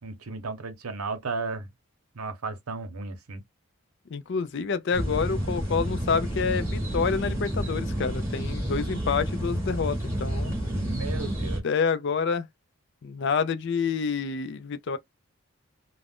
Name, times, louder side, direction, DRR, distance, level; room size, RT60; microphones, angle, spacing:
voice 1, 0.0-1.7 2.1-3.4 10.7-11.7, right 3 dB, 80° right, 0.8 m, -34 dB
voice 2, 4.1-10.6 11.6-12.5 13.0-15.0, left 5 dB, 50° left, 0.4 m, -28 dB
sound 1, 4.9-11.6, equal, 10° right, 0.9 m, -30 dB
2.4 x 2.1 x 3.4 m
head